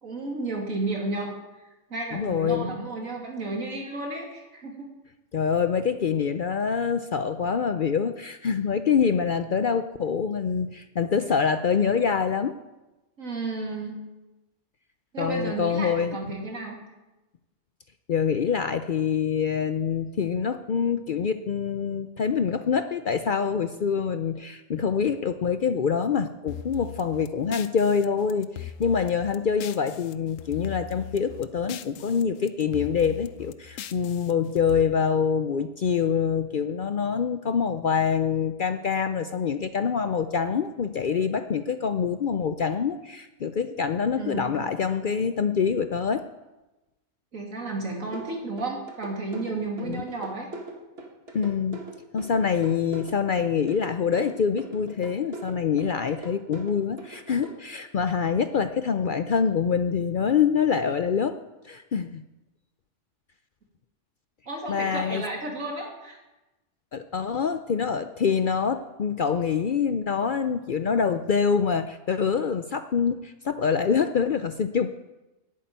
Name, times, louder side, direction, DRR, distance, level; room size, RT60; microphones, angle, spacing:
voice 1, 0.0-1.3 1.6-4.9 13.2-14.0 15.1-16.8 44.2-44.6 47.3-50.5 64.5-66.2, right 2 dB, 85° right, 0 dB, 3.1 m, -32 dB
voice 2, 2.1-2.7 5.3-12.6 15.2-16.2 18.1-46.2 49.8-50.0 51.3-51.8 52.1-61.4 61.6-62.2 64.7-65.2 66.9-74.9, left 6 dB, 55° left, 9 dB, 0.6 m, -25 dB
sound 1, 26.5-30.1 30.4-32.2 32.5-34.8, left 11 dB, 75° left, 1.0 m, -39 dB
sound 2, 48.1-57.5, right 2 dB, 50° right, 2.0 m, -40 dB
11.0 x 8.8 x 9.3 m, 1.1 s
omnidirectional pair, 1.4 m